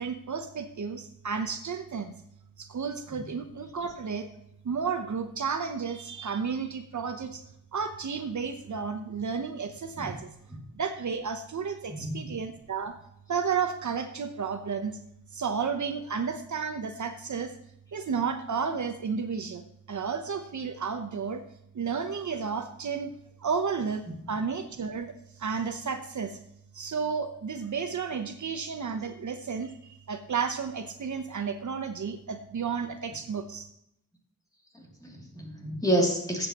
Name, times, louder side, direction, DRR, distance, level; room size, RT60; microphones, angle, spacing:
voice 1, 0.0-2.1 2.6-4.3 4.6-7.4 7.7-10.3 10.7-13.0 13.3-15.0 15.3-17.5 17.9-21.4 21.7-23.1 23.4-26.4 26.7-33.7, right 6 dB, 55° right, 6 dB, 0.8 m, -32 dB
voice 2, 11.9-12.3 24.1-24.2 35.0-36.5, right 1 dB, 10° left, -1 dB, 2.7 m, -29 dB
14.5 x 7.8 x 3.0 m, 0.76 s
wide cardioid pair, 115°, 35 cm